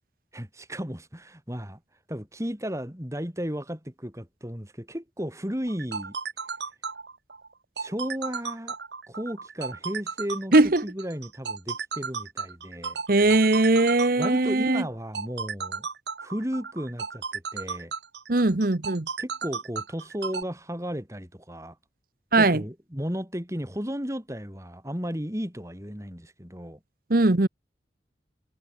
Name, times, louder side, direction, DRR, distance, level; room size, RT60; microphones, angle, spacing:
voice 1, 0.3-1.8 2.1-6.2 7.8-8.7 9.1-10.5 10.8-13.0 14.2-15.9 16.2-17.9 19.2-21.8 22.3-26.8, equal, 15° right, 4.7 m, -34 dB
sound 1, 5.7-20.4, right 5 dB, 80° right, 2.5 m, -34 dB
voice 2, 10.5-10.8 13.1-14.8 18.3-19.1 22.3-22.6 27.1-27.5, right 2 dB, 55° right, 1.1 m, -20 dB
head